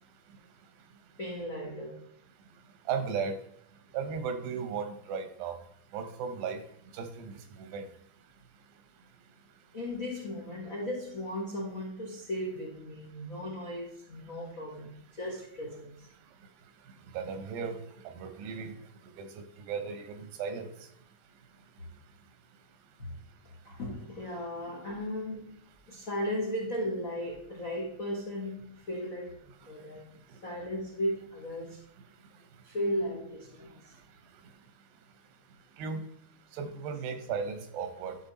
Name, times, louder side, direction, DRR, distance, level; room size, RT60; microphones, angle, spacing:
voice 1, 1.2-2.0 9.7-15.9 23.0-23.1 23.6-25.6 25.9-30.1 30.4-31.8 32.6-33.9, equal, 70° left, -2 dB, 0.7 m, -36 dB
voice 2, 2.9-3.4 3.9-5.6 5.9-6.6 6.9-7.9 17.1-17.8 18.2-18.7 19.2-20.7 35.8-36.0 36.5-38.2, right 6 dB, 85° right, 8 dB, 2.8 m, -35 dB
11.0 x 4.5 x 4.1 m, 0.72 s
omnidirectional pair, 4.1 m